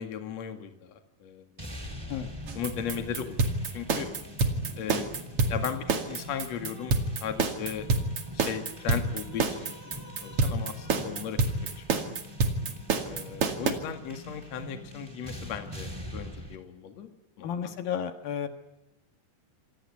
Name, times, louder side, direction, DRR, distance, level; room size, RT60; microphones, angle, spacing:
voice 1, 0.0-1.8 2.5-3.4 3.7-4.1 4.7-5.1 5.5-7.9 8.3-11.4 11.8-12.2 13.0-17.1 17.4-17.5, left 8 dB, 50° left, 7 dB, 3.0 m, -37 dB
sound 1, 1.6-16.6, equal, 5° right, 3.2 m, -43 dB
sound 2, 2.5-13.7, right 3 dB, 45° right, 2.9 m, -27 dB
voice 2, 17.4-18.5, left 8 dB, 80° left, 9 dB, 3.3 m, -32 dB
27.0 x 17.5 x 9.5 m, 0.89 s
omnidirectional pair, 4.2 m